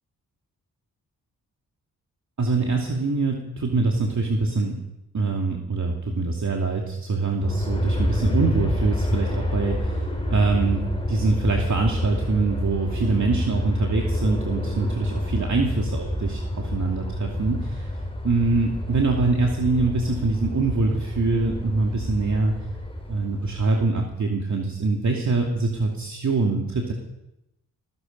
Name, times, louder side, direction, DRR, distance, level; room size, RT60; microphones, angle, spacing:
voice 1, 2.4-4.8 5.1-18.0 18.2-22.5 23.1-26.9, right 3 dB, 50° right, 1 dB, 2.6 m, -24 dB
Aircraft, 7.4-23.6, left 1 dB, 15° left, 4.6 m, -28 dB
17.5 x 15.0 x 5.4 m, 0.87 s
supercardioid pair, 45°, 38 cm